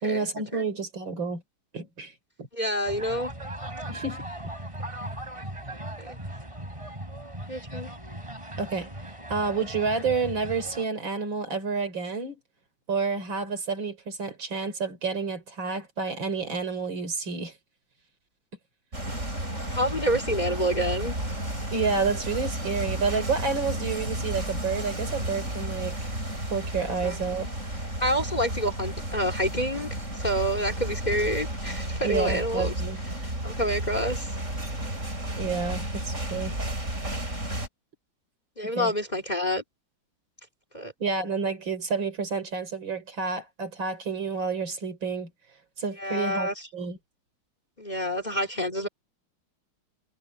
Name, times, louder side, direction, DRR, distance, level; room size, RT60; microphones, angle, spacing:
voice 1, 0.0-1.4 1.7-2.1 2.4-2.5 3.9-4.3 8.6-8.9 9.3-12.4 12.9-17.5 21.7-26.1 26.5-27.5 32.0-33.0 35.4-36.5 38.7-38.9 41.0-45.3 45.8-47.0, right 4 dB, 65° right, 4.2 m, -29 dB
voice 2, 2.5-3.3 6.0-6.2 7.5-7.9 19.7-21.1 27.0-27.2 28.0-29.9 30.2-32.7 33.4-34.3 38.6-39.6 40.7-40.9 46.0-46.5 47.8-48.9, equal, 20° left, 2.9 m, -28 dB
sound 1, 2.9-10.9, right 1 dB, 15° right, 6.1 m, -38 dB
sound 2, 18.9-37.7, right 1 dB, 35° right, 8.5 m, -32 dB
omnidirectional pair, 2.3 m